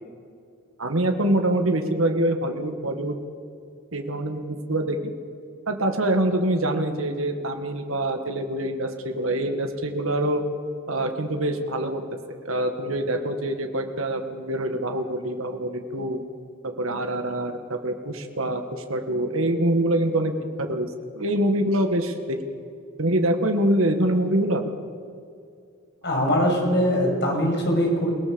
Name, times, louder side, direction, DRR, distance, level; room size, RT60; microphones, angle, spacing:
voice 1, 0.8-3.2 3.9-5.1 5.7-10.4 10.9-12.0 12.4-16.2 16.8-20.3 20.6-22.4 23.0-24.6, right 1 dB, 80° right, 6 dB, 1.9 m, -25 dB
voice 2, 26.0-28.1, equal, 55° left, 0 dB, 7.1 m, -22 dB
29.5 x 18.5 x 7.1 m, 2.5 s
head